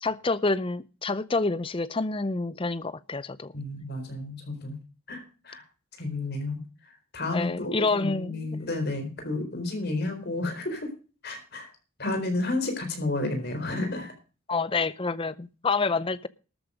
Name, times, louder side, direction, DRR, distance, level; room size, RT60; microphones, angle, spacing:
voice 1, 0.0-3.5 7.3-8.6 14.5-16.3, left 3 dB, 25° left, 0.5 m, -28 dB
voice 2, 3.5-4.8 5.1-5.6 6.0-10.9 11.2-11.7 12.0-14.1, left 2 dB, 45° left, 4.3 m, -31 dB
13.0 x 9.1 x 5.0 m
head